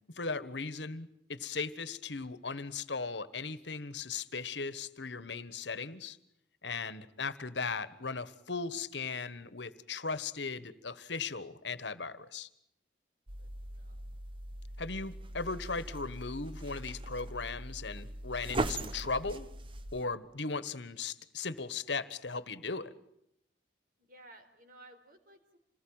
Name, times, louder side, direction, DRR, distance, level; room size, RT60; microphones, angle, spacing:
voice 1, 0.1-6.2 6.6-12.5 14.8-19.5 19.9-22.9, left 4 dB, 75° left, 15 dB, 1.5 m, -37 dB
sound 1, 13.3-20.0, right 2 dB, 30° right, 1.1 m, -40 dB
voice 2, 13.4-14.1 24.0-25.6, right 2 dB, 50° right, 5 dB, 4.5 m, -57 dB
27.5 x 20.0 x 9.0 m, 0.78 s
head